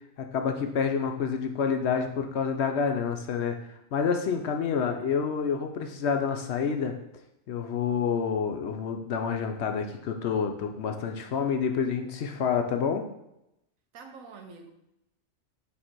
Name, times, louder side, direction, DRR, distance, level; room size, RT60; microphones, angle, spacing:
voice 1, 0.2-3.6 3.9-6.9 7.5-13.0, left 6 dB, 65° left, 5 dB, 0.8 m, -28 dB
voice 2, 13.9-14.7, right 4 dB, 85° right, 5 dB, 1.2 m, -46 dB
6.5 x 3.3 x 4.5 m, 0.84 s
omnidirectional pair, 1.4 m